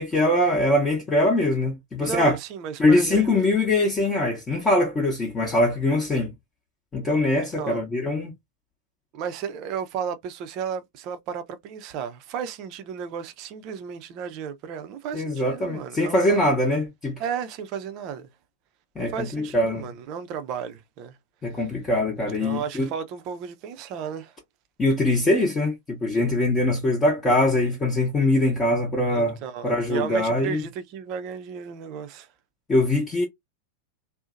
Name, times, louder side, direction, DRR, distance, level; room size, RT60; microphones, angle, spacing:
voice 1, 0.0-2.4 2.8-6.3 6.9-8.3 15.1-17.1 19.0-19.9 21.4-22.9 24.8-29.4 29.6-30.6 32.7-33.3, left 1 dB, 20° left, 0.7 m, -22 dB
voice 2, 2.0-3.3 7.4-7.8 9.1-16.5 17.2-18.3 19.0-21.2 21.5-21.6 22.4-24.3 29.1-32.3, right 7 dB, 40° right, 0.5 m, -34 dB
2.7 x 2.0 x 2.4 m
figure-of-eight pair, 90°, 0 cm